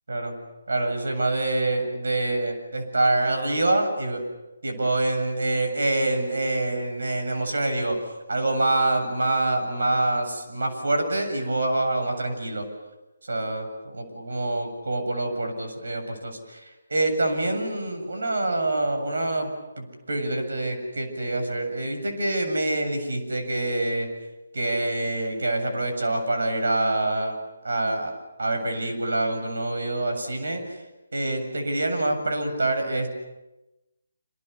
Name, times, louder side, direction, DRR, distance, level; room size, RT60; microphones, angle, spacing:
voice 1, 0.7-4.2 4.6-8.0 8.3-12.7 13.3-24.1 24.5-27.4 27.6-28.1 28.4-30.6 31.1-33.1, right 2 dB, 65° right, 5 dB, 7.8 m, -26 dB
27.5 x 27.5 x 7.1 m, 1.0 s
figure-of-eight pair, 145°, 0 cm